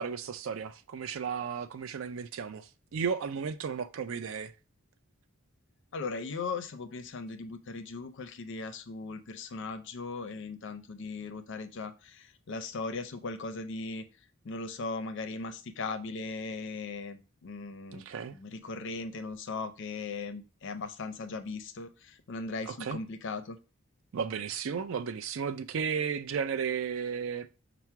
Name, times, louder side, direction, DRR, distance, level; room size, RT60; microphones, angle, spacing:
voice 1, 0.0-4.5 17.9-18.3 22.7-23.0 24.1-27.5, right 6 dB, 65° right, 0.4 m, -34 dB
voice 2, 5.9-14.0 14.4-18.0 18.3-23.6, left 3 dB, 60° left, 0.5 m, -38 dB
5.8 x 2.0 x 4.5 m
head